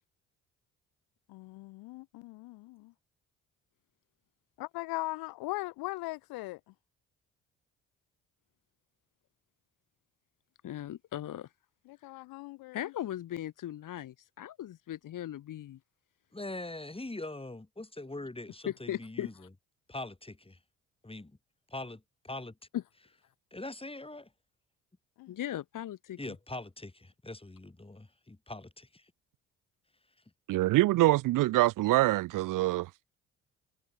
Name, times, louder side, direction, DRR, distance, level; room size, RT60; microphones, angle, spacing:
voice 1, 1.3-2.9 4.6-6.6 11.9-12.8 25.2-25.4, left 21 dB, 75° left, 1.1 m, -39 dB
voice 2, 10.6-11.5 12.7-15.8 18.7-19.5 22.7-22.8 25.3-26.2, left 12 dB, 60° left, 1.6 m, -38 dB
voice 3, 16.3-19.3 19.9-20.6 21.0-21.4 21.7-22.5 23.5-24.3 26.2-29.0, left 2 dB, 15° left, 6.9 m, -42 dB
voice 4, 30.5-32.9, right 17 dB, 60° right, 0.6 m, -25 dB
hypercardioid pair, 50°, 36 cm